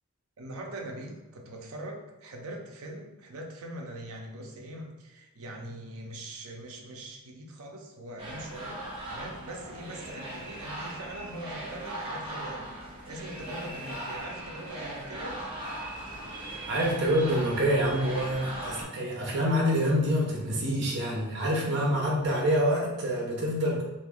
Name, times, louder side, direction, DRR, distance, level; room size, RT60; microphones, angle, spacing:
voice 1, 0.4-15.4, right 1 dB, 80° right, 1 dB, 0.6 m, -42 dB
sound 1, 8.2-18.8, right 1 dB, 25° right, 0.8 m, -39 dB
voice 2, 16.3-23.8, equal, 55° right, -2 dB, 0.9 m, -27 dB
2.7 x 2.6 x 3.5 m, 1.1 s
head